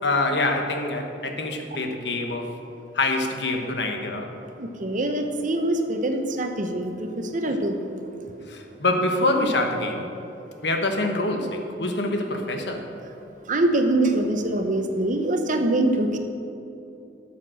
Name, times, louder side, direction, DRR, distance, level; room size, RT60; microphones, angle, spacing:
voice 1, 0.0-2.6 2.9-4.3 8.5-10.1 10.6-12.9, left 2 dB, 70° left, 4 dB, 1.2 m, -25 dB
voice 2, 4.6-8.1 13.5-16.2, right 1 dB, 45° right, 5 dB, 1.0 m, -24 dB
12.0 x 7.4 x 6.3 m, 2.8 s
head